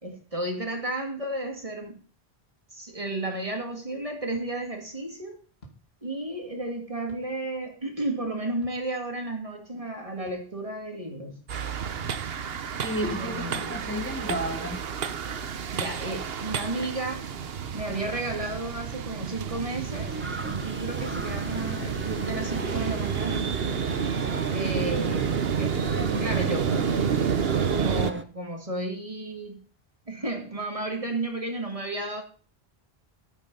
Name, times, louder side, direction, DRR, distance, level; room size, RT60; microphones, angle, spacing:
voice 1, 0.0-2.0 2.7-5.4 6.0-11.4 13.2-13.8 15.7-17.3 17.7-23.5 24.5-25.8 26.2-26.8 27.7-29.6 30.1-32.2, right 2 dB, 35° right, 2.4 m, -33 dB
sound 1, 4.3-4.5 5.6-5.8 7.1-7.3 8.6-8.8 10.2-10.4 11.8-12.0 13.5-13.7 14.8-14.9 15.9-16.0, right 1 dB, 85° left, 2.9 m, -52 dB
sound 2, 11.5-28.1, right 7 dB, 70° right, 1.1 m, -29 dB
voice 2, 12.8-14.8 25.9-26.2, equal, 10° left, 1.4 m, -32 dB
sound 3, 19.9-28.2, right 2 dB, 10° right, 0.9 m, -38 dB
14.0 x 7.8 x 5.5 m
omnidirectional pair, 1.0 m